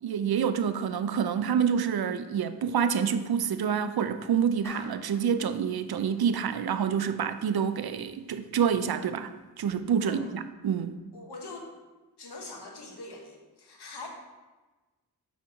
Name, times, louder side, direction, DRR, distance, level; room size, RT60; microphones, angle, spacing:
voice 1, 0.0-9.3 9.6-10.9, right 7 dB, 70° right, 0.5 m, -27 dB
Clapping, 4.6-5.3, equal, 5° left, 1.9 m, -45 dB
voice 2, 11.1-11.7 12.2-14.1, left 2 dB, 90° left, 1.1 m, -43 dB
6.0 x 4.0 x 4.8 m
cardioid pair, 50°, 39 cm